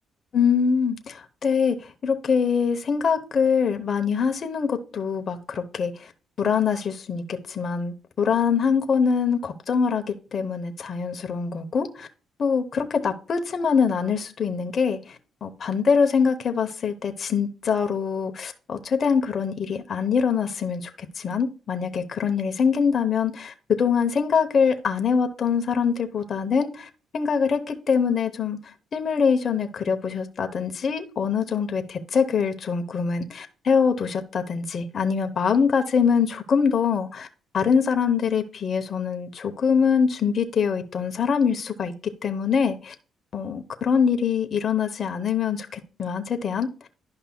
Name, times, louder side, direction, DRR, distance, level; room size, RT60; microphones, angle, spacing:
voice 1, 0.3-1.8 2.0-6.1 6.4-10.0 10.3-12.1 12.4-20.9 21.2-28.6 28.9-37.3 37.5-42.9 43.3-46.7, left 6 dB, 50° left, 0.8 m, -24 dB
11.5 x 5.4 x 2.2 m
cardioid pair, 90°, 0 cm